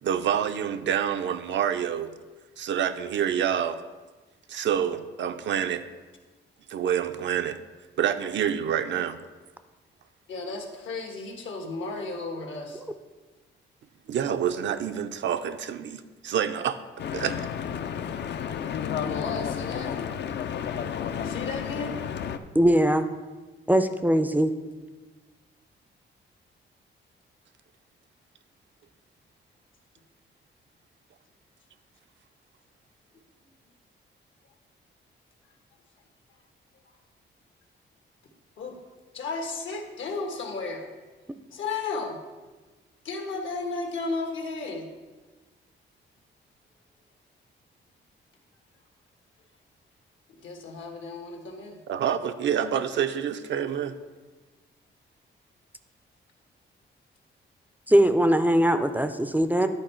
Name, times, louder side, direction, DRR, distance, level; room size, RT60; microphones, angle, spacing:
voice 1, 0.0-2.1 2.6-3.8 4.5-5.8 6.7-7.6 8.0-9.2 14.1-16.8 17.1-17.3 51.9-54.0, right 9 dB, 70° right, 9 dB, 0.5 m, -27 dB
voice 2, 10.3-12.8 19.0-19.9 21.2-22.0 38.6-38.8 39.1-40.9 41.5-42.2 43.0-44.9 50.3-51.8, left 3 dB, 80° left, 3 dB, 1.3 m, -34 dB
Stream / Boat Water vehicle, 17.0-22.4, left 8 dB, 60° left, 0.5 m, -31 dB
voice 3, 22.5-23.1 23.7-24.5 57.9-59.7, right 1 dB, 10° right, 9 dB, 0.4 m, -21 dB
10.5 x 4.6 x 4.4 m, 1.3 s
cardioid pair, 115°, 20 cm